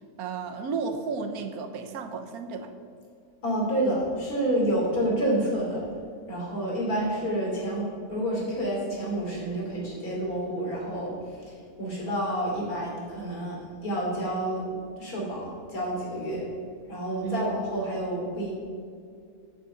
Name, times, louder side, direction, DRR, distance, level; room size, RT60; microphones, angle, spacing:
voice 1, 0.2-2.7 17.2-17.5, right 5 dB, 75° right, 7 dB, 1.4 m, -33 dB
voice 2, 3.4-5.9 6.3-14.6 15.0-16.5 16.9-18.5, right 1 dB, 70° left, -3 dB, 3.4 m, -29 dB
8.0 x 7.9 x 7.1 m, 2.3 s
omnidirectional pair, 1.6 m